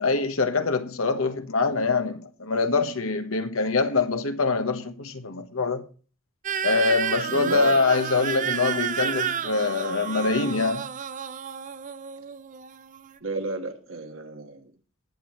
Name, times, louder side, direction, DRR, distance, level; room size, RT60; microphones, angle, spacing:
voice 1, 0.0-5.8 6.6-10.9, left 4 dB, 80° left, 1.3 m, -24 dB
sound 1, 6.4-13.2, right 8 dB, 40° right, 0.5 m, -31 dB
voice 2, 7.3-7.8 13.2-14.7, right 2 dB, 70° right, 1.5 m, -31 dB
19.5 x 7.4 x 3.1 m
head